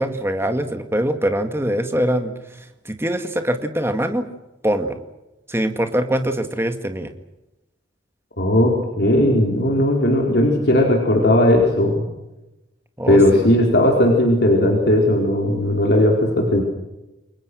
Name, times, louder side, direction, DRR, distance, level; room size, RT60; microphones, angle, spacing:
voice 1, 0.0-4.3 4.6-5.0 5.5-7.1 13.0-13.5, right 1 dB, 15° right, 7 dB, 2.0 m, -23 dB
voice 2, 8.4-12.0 13.1-16.6, left 1 dB, 55° left, 0 dB, 4.6 m, -17 dB
29.5 x 23.0 x 6.4 m, 0.97 s
head